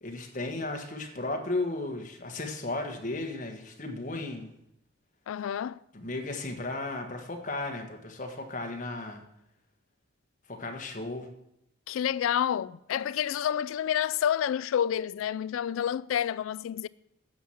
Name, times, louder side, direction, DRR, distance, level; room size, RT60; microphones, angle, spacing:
voice 1, 0.0-4.5 5.9-9.2 10.5-11.3, left 2 dB, 40° left, 1.4 m, -35 dB
voice 2, 5.3-5.8 11.9-16.9, left 9 dB, 85° left, 0.3 m, -29 dB
9.4 x 7.6 x 5.8 m
head